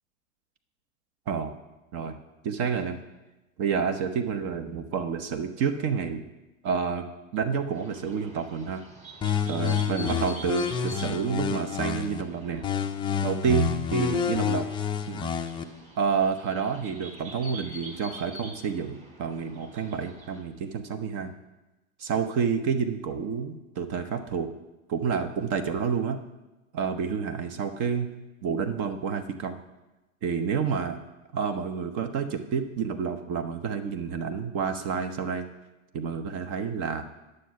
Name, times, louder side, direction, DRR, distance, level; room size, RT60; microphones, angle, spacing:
voice 1, 2.4-3.0 3.6-6.3 6.6-7.1 7.3-8.8 9.5-12.7 13.2-14.7 15.1-15.3 16.0-21.3 22.0-24.5 24.9-26.2 26.7-28.1 28.4-29.6 30.2-31.0 31.3-35.5 35.9-37.1, right 6 dB, 40° right, 7 dB, 0.9 m, -29 dB
sound 1, 7.7-20.4, right 1 dB, 15° right, 1.8 m, -47 dB
sound 2, 9.2-12.2 12.6-15.6, left 7 dB, 10° left, 0.4 m, -28 dB
10.0 x 6.5 x 5.7 m, 1.0 s
hypercardioid pair, 100°, 41 cm